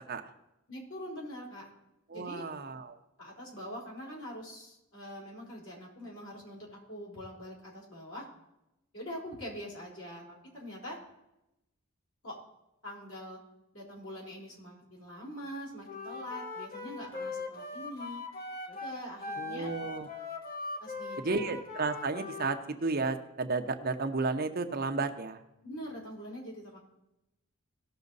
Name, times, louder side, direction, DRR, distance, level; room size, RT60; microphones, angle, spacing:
voice 1, 0.7-1.7 2.1-2.5 3.2-8.3 8.9-10.2 10.5-11.0 12.2-12.3 12.8-13.4 13.7-18.2 18.7-19.7 20.8-21.4 25.6-26.8, equal, 80° left, -4 dB, 4.4 m, -43 dB
voice 2, 2.1-3.0 19.4-20.1 21.2-25.4, right 3 dB, 45° right, 6 dB, 0.8 m, -32 dB
Wind instrument woodwind instrument, 15.8-22.6, left 3 dB, 45° left, 1.2 m, -40 dB
18.0 x 6.2 x 4.0 m, 0.90 s
head